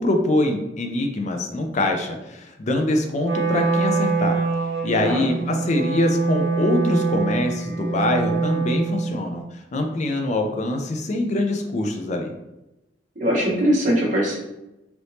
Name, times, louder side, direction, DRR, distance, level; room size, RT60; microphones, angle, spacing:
voice 1, 0.0-4.4 4.8-9.4 9.7-12.3, left 1 dB, 40° left, 4 dB, 0.4 m, -24 dB
Wind instrument woodwind instrument, 3.2-9.2, right 4 dB, 85° right, 0.7 m, -24 dB
voice 2, 5.0-5.3 13.2-14.4, equal, 45° right, -4 dB, 1.1 m, -21 dB
3.3 x 2.9 x 2.7 m, 0.94 s
head